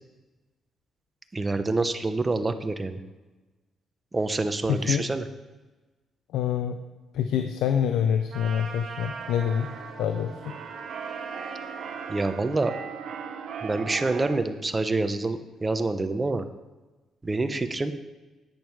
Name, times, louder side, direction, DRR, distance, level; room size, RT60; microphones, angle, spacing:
voice 1, 1.3-3.0 4.1-5.2 12.1-12.7 13.6-16.5 17.2-17.9, right 2 dB, 20° right, 9 dB, 0.9 m, -27 dB
voice 2, 4.7-5.1 6.3-6.8 7.1-9.7 10.0-10.5, left 8 dB, 85° left, 7 dB, 0.6 m, -26 dB
Trumpet, 8.3-12.6, right 4 dB, 50° right, 1.6 m, -41 dB
Keyboard (musical), 8.5-14.3, right 7 dB, 70° right, 0.9 m, -39 dB
10.5 x 9.2 x 4.7 m, 1.2 s
cardioid pair, 90°, 0 cm